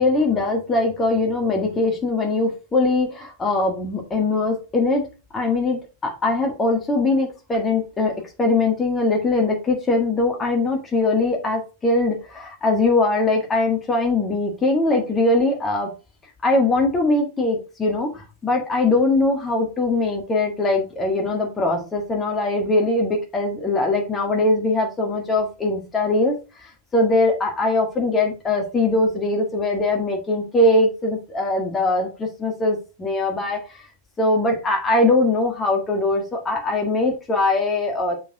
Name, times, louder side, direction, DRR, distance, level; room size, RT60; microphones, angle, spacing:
voice 1, 0.0-5.1 5.3-15.9 16.4-33.8 34.2-38.1, left 2 dB, 20° left, 1.8 m, -21 dB
6.8 x 4.4 x 4.6 m
figure-of-eight pair, 90°, 0 cm